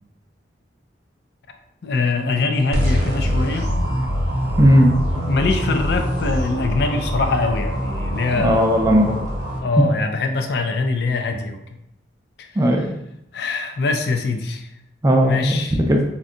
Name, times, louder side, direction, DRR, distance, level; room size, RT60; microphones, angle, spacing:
voice 1, 1.8-3.7 5.3-8.7 9.6-11.6 12.4-12.5 13.3-14.7 15.2-15.8, left 3 dB, 65° left, 5 dB, 0.4 m, -23 dB
sound 1, 2.7-9.6, equal, 60° right, 0.7 m, -24 dB
voice 2, 4.6-4.9 8.4-9.2 12.6-12.9 15.0-16.0, equal, 20° right, 1 dB, 0.4 m, -16 dB
2.6 x 2.2 x 3.7 m, 0.79 s
head